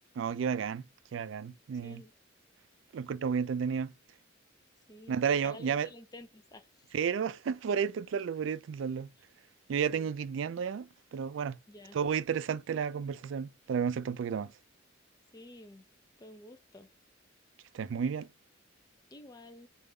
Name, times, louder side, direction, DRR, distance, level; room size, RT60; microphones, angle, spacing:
voice 1, 0.2-0.8 1.1-2.0 2.9-3.9 5.1-5.9 6.9-9.1 9.7-11.6 11.9-14.5 17.7-18.3, right 7 dB, 70° right, 0.3 m, -32 dB
voice 2, 1.8-2.1 4.9-5.2 5.4-6.9 9.9-10.1 11.7-12.0 15.3-15.9 16.2-16.9 19.1-19.7, left 1 dB, 20° left, 0.4 m, -51 dB
3.5 x 2.4 x 3.2 m
head